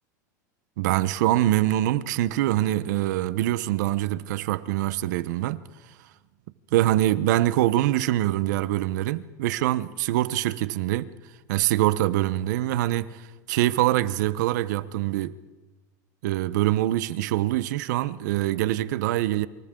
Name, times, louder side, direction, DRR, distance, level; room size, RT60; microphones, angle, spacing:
voice 1, 0.8-5.6 6.7-11.1 11.5-15.3 16.2-19.5, right 15 dB, 75° right, 1.0 m, -24 dB
28.0 x 25.5 x 3.9 m
supercardioid pair, 130°, 10 cm